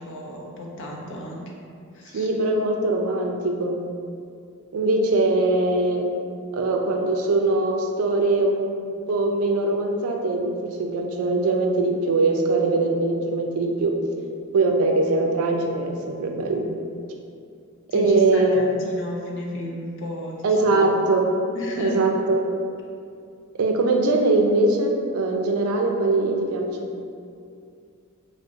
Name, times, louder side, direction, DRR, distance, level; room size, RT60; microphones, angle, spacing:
voice 1, 0.0-1.5 1.9-2.3 17.9-20.9 21.5-22.0, left 1 dB, 60° left, -1 dB, 0.5 m, -33 dB
voice 2, 2.1-3.8 4.7-6.0 6.5-8.6 8.8-13.9 14.5-16.7 17.9-18.6 20.4-21.3 21.8-22.4 23.5-26.9, right 2 dB, 85° right, 2 dB, 0.4 m, -22 dB
2.6 x 2.0 x 3.8 m, 2.4 s
head